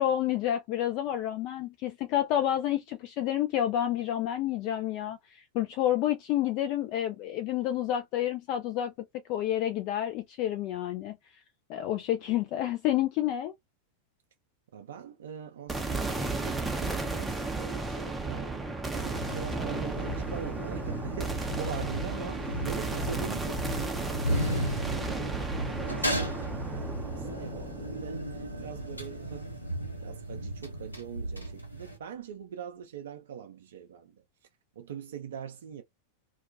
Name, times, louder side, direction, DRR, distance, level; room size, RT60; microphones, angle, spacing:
voice 1, 0.0-8.9 9.3-11.2 11.7-13.5, left 12 dB, 40° left, 0.3 m, -29 dB
voice 2, 14.7-29.5 30.0-34.2 34.8-35.8, right 8 dB, 60° right, 0.5 m, -42 dB
sound 1, 15.7-30.0, right 3 dB, 10° right, 0.5 m, -34 dB
sound 2, 19.1-32.0, equal, 85° left, 0.9 m, -35 dB
2.2 x 2.2 x 2.5 m
figure-of-eight pair, 90°, 0 cm